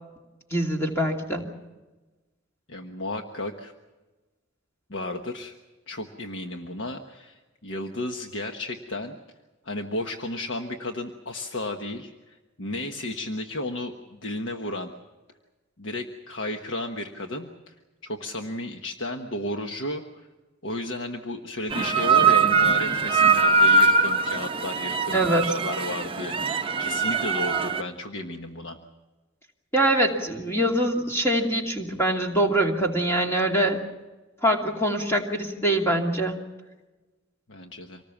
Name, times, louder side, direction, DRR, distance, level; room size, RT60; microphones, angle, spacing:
voice 1, 0.5-1.4 25.1-25.5 29.7-33.8 34.4-36.4, right 1 dB, 15° left, 1 dB, 2.7 m, -24 dB
voice 2, 2.7-3.7 4.9-5.5 5.9-9.2 9.6-14.9 15.8-17.7 18.0-20.0 20.6-28.8 37.5-38.0, left 1 dB, 65° left, 4 dB, 1.3 m, -33 dB
sound 1, 21.7-27.8, right 4 dB, 25° right, 0.8 m, -22 dB
26.0 x 19.0 x 7.3 m, 1.2 s
head